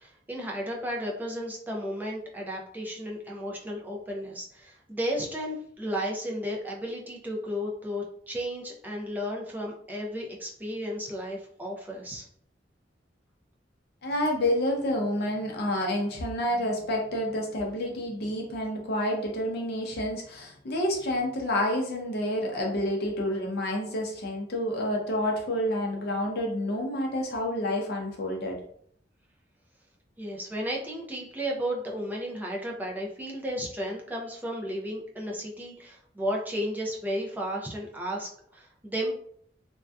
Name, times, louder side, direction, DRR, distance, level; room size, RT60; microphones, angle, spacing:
voice 1, 0.0-12.3 30.2-39.1, equal, 10° right, -2 dB, 0.4 m, -33 dB
voice 2, 14.0-28.6, left 1 dB, 60° left, 1 dB, 0.5 m, -29 dB
2.5 x 2.2 x 2.2 m, 0.64 s
head